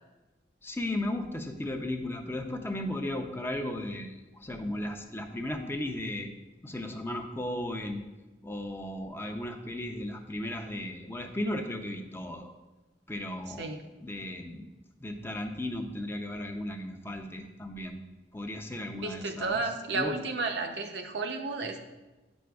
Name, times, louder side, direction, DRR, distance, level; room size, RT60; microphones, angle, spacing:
voice 1, 0.6-6.3 6.6-8.0 8.4-12.5 13.1-14.7 15.0-18.0 18.3-20.1, left 1 dB, 15° left, 5 dB, 0.5 m, -35 dB
voice 2, 18.9-21.8, right 3 dB, 70° right, 5 dB, 0.6 m, -32 dB
9.1 x 6.2 x 2.3 m, 1.1 s
head